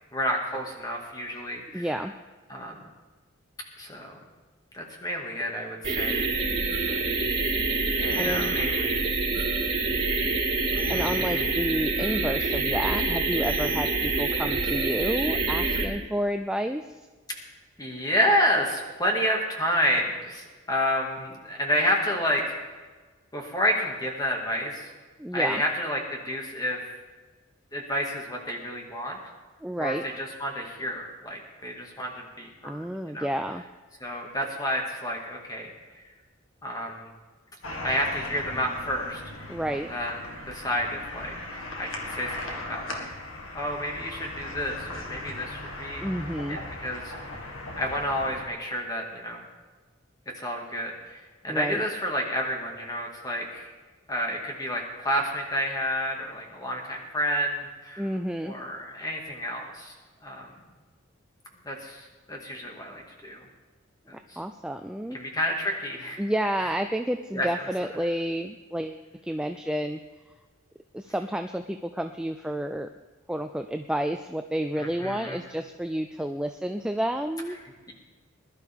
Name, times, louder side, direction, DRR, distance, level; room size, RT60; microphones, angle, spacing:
voice 1, 0.1-1.9 2.5-2.8 3.8-4.2 4.7-6.3 6.9-7.0 8.0-9.0 9.4-9.7 10.7-11.5 17.8-22.6 23.3-24.9 25.3-26.8 27.7-29.2 29.8-32.8 33.1-33.3 34.0-35.7 36.6-37.1 37.8-39.2 39.9-40.1 40.4-41.3 41.7-43.1 43.5-46.0 46.5-47.1 47.7-49.4 50.4-53.7 54.1-58.1 58.4-59.9 60.2-60.5 61.6-63.4 64.1-64.4 65.1-66.2 67.3-67.5 74.8-75.4, equal, 20° left, 0 dB, 2.0 m, -30 dB
voice 2, 1.7-2.1 8.2-8.6 10.9-16.9 25.2-25.6 29.6-30.0 32.6-33.6 39.5-39.9 46.0-46.6 51.5-51.8 58.0-58.5 64.1-65.2 66.2-70.0 70.9-72.9 73.3-77.6, right 1 dB, 5° right, 6 dB, 0.3 m, -30 dB
sound 1, 5.8-15.8, right 3 dB, 25° right, 3.3 m, -26 dB
sound 2, 37.6-48.4, left 2 dB, 80° left, 1.8 m, -38 dB
21.0 x 12.0 x 3.6 m, 1.3 s
head